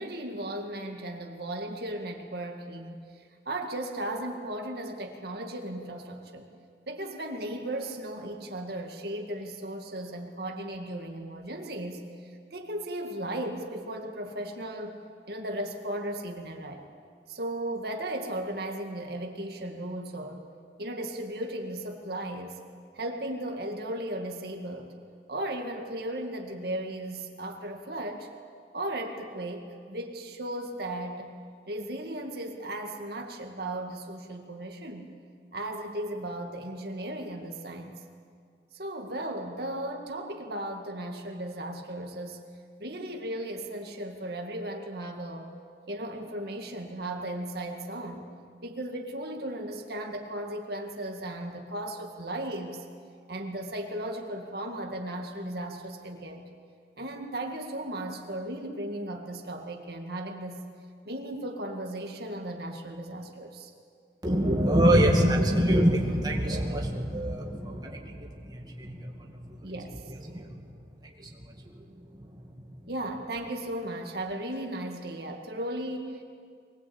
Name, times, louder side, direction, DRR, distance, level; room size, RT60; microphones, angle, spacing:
voice 1, 0.0-6.5 6.9-16.8 17.3-20.4 20.8-22.6 22.9-25.0 25.3-28.3 28.7-31.3 31.7-35.1 35.5-38.0 38.7-42.4 42.8-45.5 45.9-48.3 48.6-52.8 53.3-56.4 57.0-60.6 61.1-63.7 69.6-70.0 72.9-76.2, right 1 dB, 55° right, 2 dB, 2.0 m, -36 dB
voice 2, 64.2-69.6 70.2-70.6 71.0-71.3 71.7-71.8 72.2-72.3, equal, 20° right, 0 dB, 2.2 m, -25 dB
23.5 x 19.5 x 8.8 m, 2.2 s
head